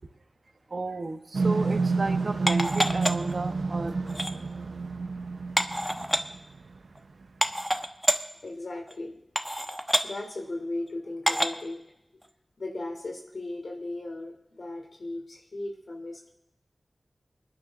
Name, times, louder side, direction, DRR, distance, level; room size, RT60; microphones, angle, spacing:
voice 1, 0.7-4.0, right 3 dB, 65° right, 1.3 m, -33 dB
sound 1, 1.3-6.6, right 4 dB, 85° right, 0.7 m, -29 dB
sound 2, 2.5-3.3 4.1-4.3 5.6-6.2 7.0-7.1 7.4-8.2 8.9-9.0 9.4-10.1 11.3-11.6 12.2-12.3, equal, ahead, 1.1 m, -26 dB
voice 2, 8.4-9.1 10.0-11.8 12.6-16.3, left 2 dB, 70° left, 3.3 m, -36 dB
25.0 x 10.0 x 3.8 m
wide cardioid pair, 55°, 0 cm